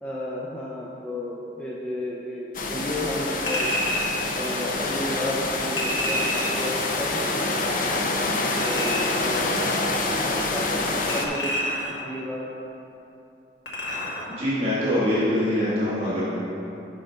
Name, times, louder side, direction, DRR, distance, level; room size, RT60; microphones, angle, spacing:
voice 1, 0.0-3.8 4.3-7.5 8.6-11.5 12.0-12.5, left 1 dB, 5° left, -5 dB, 0.5 m, -33 dB
sound 1, 2.5-11.3, left 2 dB, 45° left, 0.6 m, -26 dB
Chink clink, 3.5-4.2 5.8-6.7 8.5-9.3 11.1-12.1 13.7-14.3 14.7-14.8, equal, 80° left, 1.3 m, -29 dB
voice 2, 14.3-16.2, left 1 dB, 30° right, -9 dB, 1.5 m, -24 dB
6.2 x 5.7 x 5.5 m, 2.9 s
head